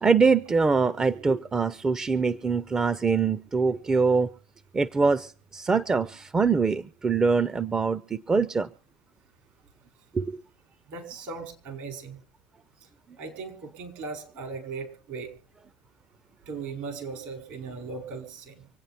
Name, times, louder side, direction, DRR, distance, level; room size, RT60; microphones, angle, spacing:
voice 1, 0.0-4.3 4.7-8.7 10.1-10.4, right 4 dB, 25° right, 16 dB, 0.6 m, -24 dB
voice 2, 10.9-12.2 13.2-15.3 16.5-18.7, right 4 dB, 65° right, 5 dB, 4.9 m, -38 dB
25.5 x 8.9 x 4.2 m, 0.41 s
hypercardioid pair, 70°, 3 cm